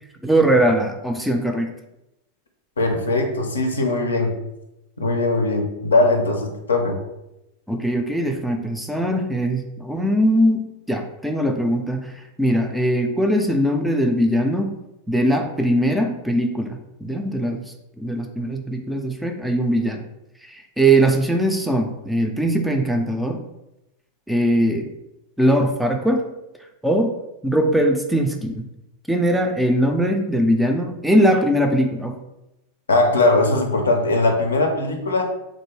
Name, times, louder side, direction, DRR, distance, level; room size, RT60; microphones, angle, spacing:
voice 1, 0.2-1.7 7.7-12.1 12.4-14.7 15.1-17.6 18.0-20.1 20.4-23.4 24.3-24.9 25.4-26.3 26.8-27.1 27.4-28.6 29.1-32.2, right 1 dB, 5° right, 3 dB, 0.4 m, -20 dB
voice 2, 2.8-4.3 5.0-7.0 32.9-35.3, left 2 dB, 70° left, 4 dB, 0.5 m, -20 dB
3.3 x 2.6 x 3.1 m, 0.91 s
figure-of-eight pair, 90°, 0 cm